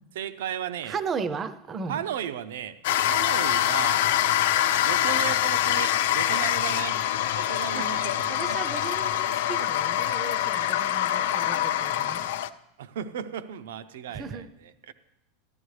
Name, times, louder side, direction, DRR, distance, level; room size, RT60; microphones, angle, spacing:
voice 1, 0.1-1.0 1.9-4.1 4.8-7.0 7.3-8.6 12.8-14.9, right 9 dB, 90° right, 12 dB, 0.6 m, -35 dB
voice 2, 0.8-2.0 7.7-12.3 14.1-14.5, right 5 dB, 20° right, 14 dB, 0.5 m, -36 dB
sound 1, 2.8-12.5, left 12 dB, 65° left, 0.4 m, -25 dB
14.5 x 12.5 x 3.2 m, 0.87 s
supercardioid pair, 170°, 0 cm